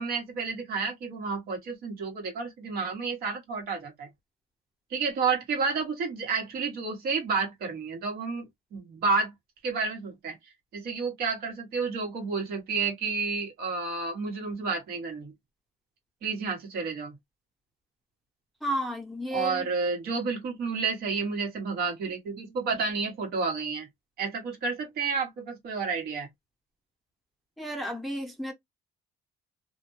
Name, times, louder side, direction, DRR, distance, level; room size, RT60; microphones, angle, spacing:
voice 1, 0.0-4.1 4.9-8.4 8.7-9.3 9.6-10.4 10.7-15.3 16.2-17.1 19.3-23.9 24.2-26.3, right 4 dB, 65° right, 1.2 m, -30 dB
voice 2, 18.6-19.7 27.6-28.5, equal, ahead, 0.7 m, -32 dB
2.4 x 2.1 x 3.0 m
cardioid pair, 110°, 17 cm